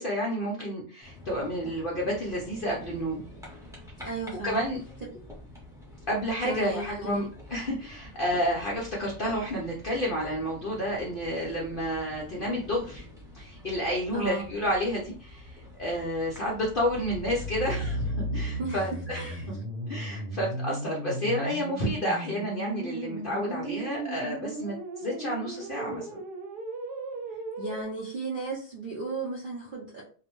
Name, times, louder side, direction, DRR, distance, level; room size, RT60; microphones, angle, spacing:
voice 1, 0.0-3.2 4.4-4.8 6.1-13.1 13.3-19.3 19.9-26.1, equal, 60° left, -4 dB, 0.5 m, -30 dB
sound 1, 1.0-18.1, left 1 dB, 5° right, 0.6 m, -47 dB
voice 2, 4.0-4.6 6.4-7.2 14.1-14.5 18.6-18.9 19.2-19.5 27.3-30.0, right 3 dB, 65° right, -4 dB, 0.5 m, -35 dB
sound 2, 16.7-27.8, right 1 dB, 85° right, 1.2 m, -35 dB
2.6 x 2.0 x 2.9 m, 0.41 s
omnidirectional pair, 1.7 m